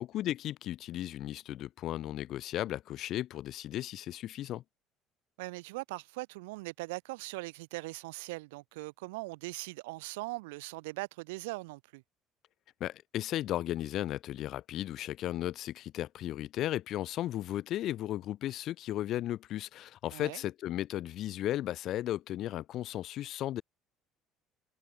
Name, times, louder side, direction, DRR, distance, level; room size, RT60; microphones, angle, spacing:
voice 1, 0.0-4.6 12.8-23.6, left 13 dB, 55° left, 1.1 m, -35 dB
voice 2, 5.4-12.0 20.1-20.4, right 24 dB, 75° right, 1.7 m, -40 dB
hypercardioid pair, 60°, 0 cm